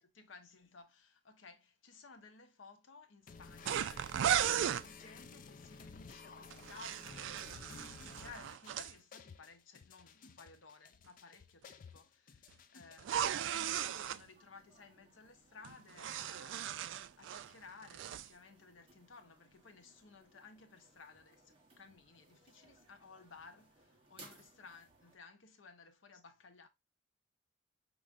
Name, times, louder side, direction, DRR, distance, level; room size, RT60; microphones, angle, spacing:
voice 1, 0.0-4.0 4.3-26.7, left 4 dB, 85° left, 0.8 m, -58 dB
sound 1, 3.3-13.3, left 4 dB, 45° left, 0.4 m, -54 dB
sound 2, 3.7-4.9 6.5-8.9 13.0-14.2 15.6-17.5 17.8-18.3, right 10 dB, 75° right, 0.3 m, -36 dB
sound 3, 13.5-25.2, right 2 dB, 30° right, 1.0 m, -64 dB
5.5 x 3.1 x 2.4 m
head